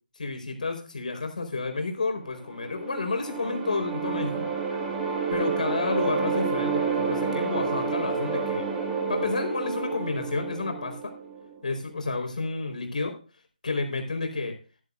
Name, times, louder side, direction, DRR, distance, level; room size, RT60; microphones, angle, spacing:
voice 1, 0.2-4.5 5.3-8.7 9.1-11.1 11.6-13.1 13.6-14.6, left 3 dB, 55° left, 4 dB, 4.6 m, -30 dB
sound 1, 2.4-11.6, right 5 dB, 10° right, 2.1 m, -29 dB
15.0 x 11.0 x 2.6 m, 0.36 s
figure-of-eight pair, 155°, 5 cm